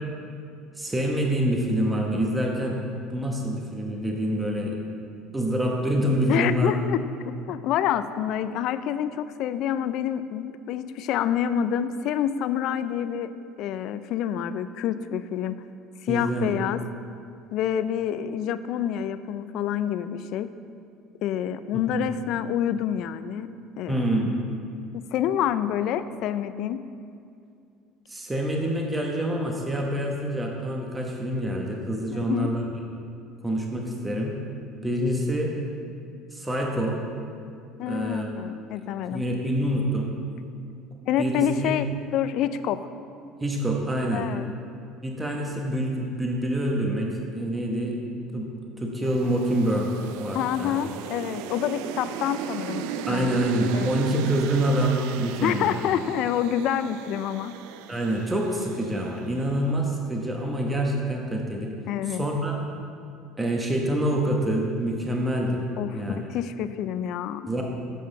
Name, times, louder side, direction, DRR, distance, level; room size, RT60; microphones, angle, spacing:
voice 1, 0.8-4.8 5.3-6.7 16.1-16.5 21.9-22.1 23.9-24.4 28.1-32.7 33.4-34.4 34.8-35.5 36.3-37.0 37.9-38.3 38.8-40.1 41.2-41.8 43.4-44.3 45.0-48.0 48.3-48.5 48.8-49.9 50.2-50.8 53.1-55.8 57.9-61.7 62.1-62.6 63.4-65.7 65.9-66.2 67.5-67.6, right 1 dB, 15° right, 0 dB, 1.1 m, -26 dB
voice 2, 6.3-13.3 13.6-15.6 16.0-16.8 17.5-20.5 21.2-23.5 23.8-24.0 24.9-26.8 32.3-32.5 37.8-39.2 41.1-42.8 44.1-44.5 50.3-53.4 53.7-53.9 55.4-57.6 61.9-62.2 65.8-67.5, left 10 dB, 65° left, 13 dB, 0.4 m, -27 dB
sound 1, 49.0-59.4, right 9 dB, 80° right, 0.4 m, -36 dB
7.6 x 5.4 x 6.6 m, 2.5 s
supercardioid pair, 100°, 0 cm